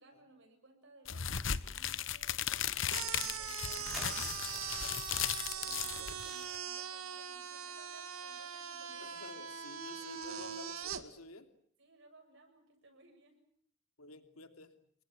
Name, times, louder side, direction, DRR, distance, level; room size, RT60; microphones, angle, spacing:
voice 1, 0.0-5.1 5.5-9.4 11.8-13.5, right 2 dB, 60° right, 3 dB, 7.6 m, -62 dB
sound 1, 1.1-6.6, left 9 dB, 60° left, 1.1 m, -37 dB
sound 2, 2.9-11.0, right 8 dB, 80° right, 2.1 m, -41 dB
sound 3, 3.9-4.9, equal, ahead, 7.4 m, -48 dB
voice 2, 9.0-11.5 14.0-14.7, left 2 dB, 90° left, 7 dB, 3.1 m, -51 dB
29.5 x 22.5 x 8.7 m, 0.62 s
head